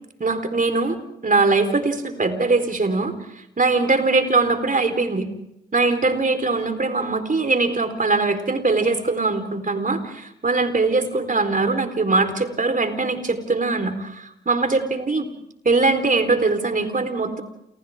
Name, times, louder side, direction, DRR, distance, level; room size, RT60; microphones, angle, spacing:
voice 1, 0.2-1.0 1.2-3.1 3.6-5.3 5.7-15.3 15.6-17.4, right 3 dB, 40° right, 8 dB, 4.2 m, -21 dB
29.5 x 29.0 x 3.7 m, 0.81 s
supercardioid pair, 40°, 20 cm